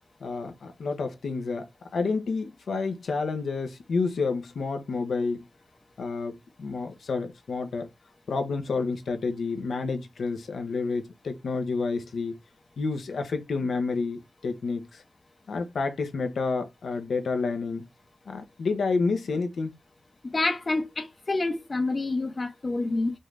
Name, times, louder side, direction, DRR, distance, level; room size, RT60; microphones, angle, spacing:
voice 1, 0.2-5.5 6.0-7.9 8.3-12.4 12.8-15.0 15.5-17.9 18.3-19.7, left 4 dB, 85° left, 0.9 m, -29 dB
voice 2, 20.3-23.1, left 2 dB, 35° left, 0.9 m, -27 dB
5.5 x 2.6 x 3.3 m
wide cardioid pair, 105°, 0 cm